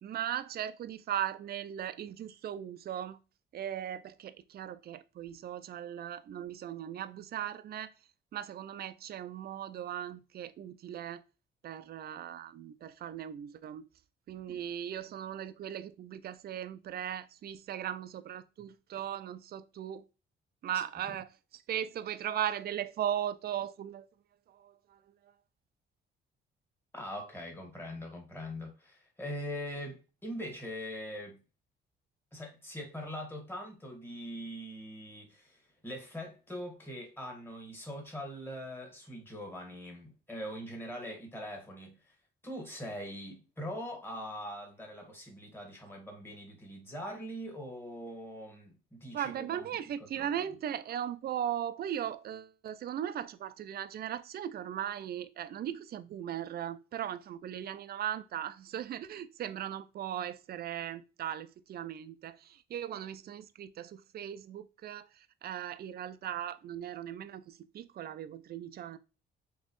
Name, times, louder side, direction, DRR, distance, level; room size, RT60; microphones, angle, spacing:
voice 1, 0.0-3.2 3.5-7.9 8.3-11.2 11.6-13.9 14.3-20.0 20.6-24.1 24.5-25.0 49.1-69.0, right 10 dB, 50° right, 0.4 m, -38 dB
voice 2, 26.9-31.4 32.3-42.2 42.4-49.7 50.0-50.3, equal, 10° left, 1.8 m, -42 dB
4.2 x 3.1 x 3.0 m
cardioid pair, 90°, 20 cm